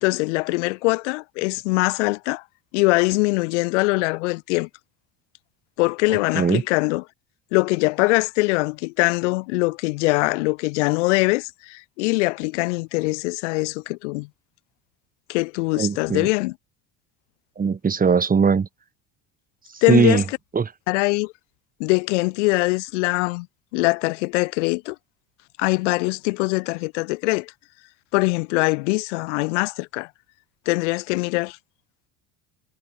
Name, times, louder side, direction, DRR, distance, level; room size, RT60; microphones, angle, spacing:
voice 1, 0.0-2.4 2.7-4.7 5.8-7.0 7.5-14.3 15.3-16.5 19.8-20.4 20.9-21.3 21.8-23.5 23.7-25.0 25.6-27.5 28.1-30.1 30.7-31.6, left 25 dB, 90° left, 2.1 m, -22 dB
voice 2, 15.8-16.3 17.6-18.7 19.9-20.2 20.5-20.7, right 5 dB, 25° right, 5.1 m, -19 dB
supercardioid pair, 115°, 35 cm